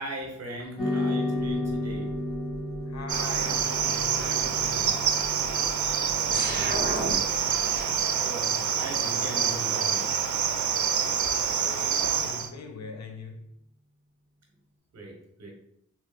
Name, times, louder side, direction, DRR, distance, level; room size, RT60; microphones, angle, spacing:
voice 1, 0.0-2.2 6.1-7.1 8.2-10.2 14.9-15.5, right 1 dB, 60° right, 0.9 m, -39 dB
sound 1, 0.8-9.3, left 1 dB, 15° left, 1.5 m, -34 dB
sound 2, 1.4-8.0, right 1 dB, 35° right, 0.7 m, -38 dB
voice 2, 2.9-5.1 8.6-8.9 11.5-13.5, left 4 dB, 65° left, 0.6 m, -42 dB
Cricket, 3.1-12.5, right 7 dB, 90° right, 0.5 m, -27 dB
3.0 x 2.9 x 4.2 m
wide cardioid pair, 170°, 29 cm